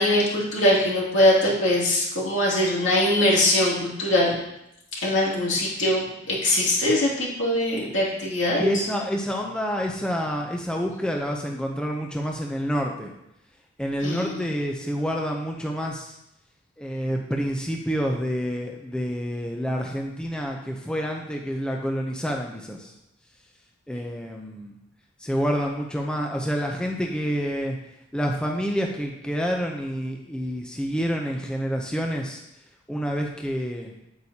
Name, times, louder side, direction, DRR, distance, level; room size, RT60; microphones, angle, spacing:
voice 1, 0.0-4.3 5.0-8.8 14.0-14.5, left 1 dB, 65° left, -5 dB, 2.6 m, -22 dB
voice 2, 8.6-13.1 13.8-16.1 16.8-22.9 23.9-24.7 25.2-27.8 28.1-32.4 32.9-33.9, equal, 5° left, 0 dB, 0.6 m, -28 dB
8.7 x 8.1 x 2.8 m, 0.85 s
head